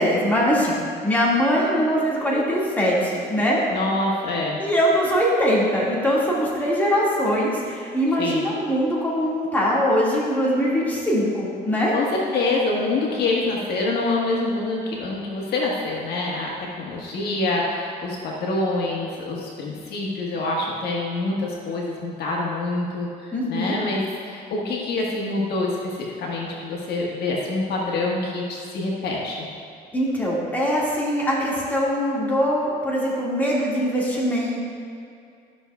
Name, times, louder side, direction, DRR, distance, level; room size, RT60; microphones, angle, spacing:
voice 1, 0.0-3.6 4.6-11.9 23.3-23.8 29.9-34.6, equal, 10° left, -6 dB, 2.0 m, -22 dB
voice 2, 3.7-4.6 8.2-8.5 11.9-29.5, left 2 dB, 70° left, -3 dB, 1.5 m, -26 dB
12.5 x 6.3 x 2.3 m, 2.4 s
cardioid pair, 110°, 17 cm